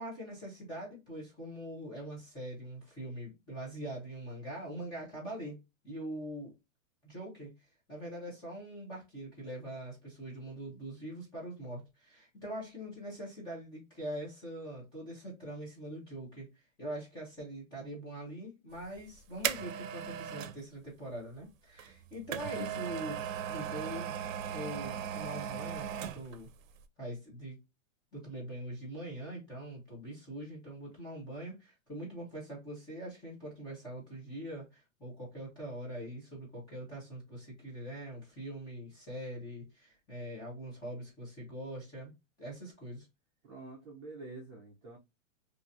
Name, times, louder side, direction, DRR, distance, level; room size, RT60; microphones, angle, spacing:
voice 1, 0.0-5.6 5.8-6.5 7.0-7.5 7.9-16.5 16.8-24.2 24.5-26.5 27.0-27.6 28.1-42.1 42.4-43.1, right 1 dB, 10° left, 0.9 m, -43 dB
sound 1, 18.8-20.6 21.8-26.4 26.8-26.9, right 9 dB, 80° right, 0.6 m, -37 dB
voice 2, 43.4-45.0, right 2 dB, 20° right, 0.7 m, -47 dB
2.8 x 2.7 x 2.5 m
supercardioid pair, 175°, 39 cm